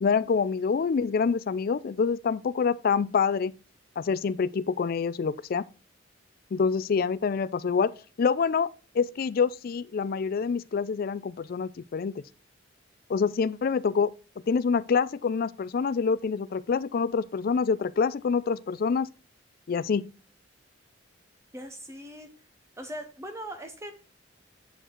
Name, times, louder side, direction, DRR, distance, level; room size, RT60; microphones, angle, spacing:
voice 1, 0.0-3.5 4.0-5.6 6.5-7.9 8.2-8.7 9.0-12.1 13.1-14.1 14.5-19.1 19.7-20.0, left 5 dB, 50° left, 0.3 m, -26 dB
voice 2, 21.5-22.3 22.8-23.9, equal, 15° right, 0.7 m, -40 dB
8.0 x 4.6 x 4.4 m
head